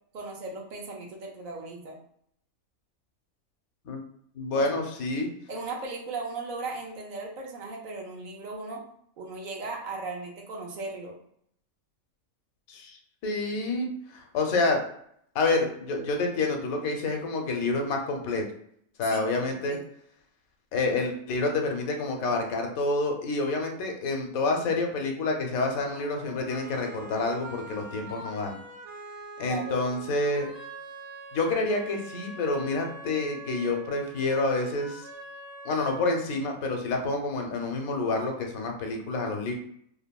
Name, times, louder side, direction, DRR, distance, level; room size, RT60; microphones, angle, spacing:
voice 1, 0.1-2.0 4.5-4.7 5.5-8.8 9.2-11.2 19.1-19.8 29.4-29.7, right 3 dB, 85° right, 0 dB, 0.4 m, -37 dB
voice 2, 4.3-5.3 12.7-14.8 15.3-18.4 19.0-19.8 20.7-28.6 29.4-30.5 31.3-35.1 35.6-39.5, left 3 dB, 85° left, 3 dB, 1.1 m, -28 dB
sound 1, 25.9-36.9, right 1 dB, 55° right, 1.0 m, -44 dB
3.2 x 2.0 x 2.2 m, 0.68 s
omnidirectional pair, 1.5 m